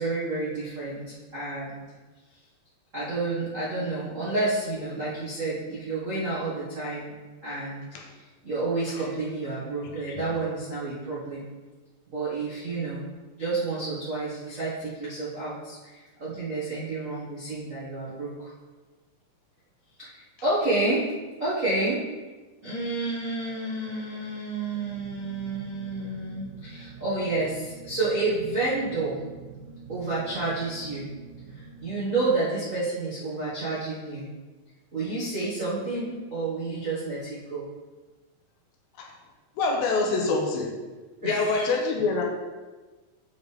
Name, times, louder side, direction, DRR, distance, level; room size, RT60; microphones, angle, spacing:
voice 1, 0.0-1.8 2.9-7.1 7.4-7.8 8.4-11.4 12.1-13.0 13.4-18.5 20.0-21.1 21.4-22.0 22.6-29.2 29.9-31.1 31.5-34.3 34.9-37.6 41.2-41.7, right 2 dB, 70° right, -11 dB, 0.7 m, -30 dB
voice 2, 9.9-10.3 39.0-39.1 39.6-40.7 41.2-42.2, left 3 dB, 80° left, 1 dB, 2.3 m, -26 dB
sound 1, 24.4-32.8, right 5 dB, 85° right, 1.8 m, -45 dB
8.0 x 4.9 x 3.5 m, 1.3 s
omnidirectional pair, 4.5 m